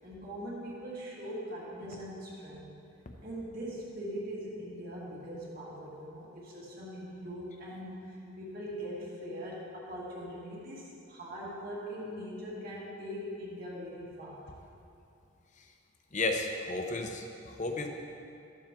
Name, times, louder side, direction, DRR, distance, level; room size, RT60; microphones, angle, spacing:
voice 1, 0.0-2.7 3.2-14.5, equal, 45° right, -6 dB, 2.1 m, -41 dB
voice 2, 16.1-17.9, left 2 dB, 35° left, 4 dB, 0.8 m, -33 dB
13.5 x 7.3 x 3.7 m, 2.6 s
head